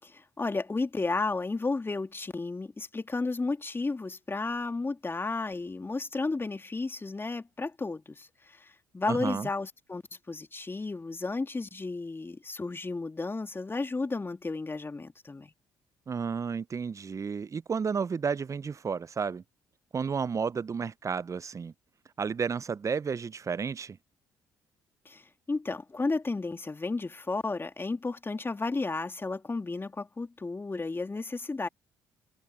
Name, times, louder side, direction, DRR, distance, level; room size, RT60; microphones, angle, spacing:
voice 1, 0.0-10.0 10.3-15.5 25.0-31.7, left 3 dB, 25° left, 2.7 m, -33 dB
voice 2, 9.1-9.5 16.1-19.4 19.9-21.7 22.2-24.0, right 6 dB, 35° right, 0.6 m, -32 dB
hypercardioid pair, 50°, 9 cm